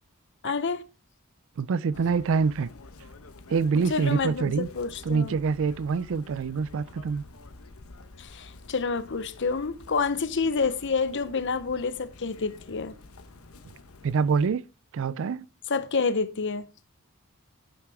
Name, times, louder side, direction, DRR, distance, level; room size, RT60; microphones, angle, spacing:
voice 1, 0.4-0.8 3.7-5.4 8.2-12.9 15.7-16.6, left 4 dB, 60° left, 0.8 m, -28 dB
voice 2, 1.6-2.7 3.5-4.7 5.1-7.2 14.0-14.6 14.9-15.5, right 5 dB, 65° right, 0.4 m, -25 dB
Chirp tweet, 1.9-14.5, left 2 dB, 80° left, 1.0 m, -49 dB
9.5 x 7.8 x 3.5 m
head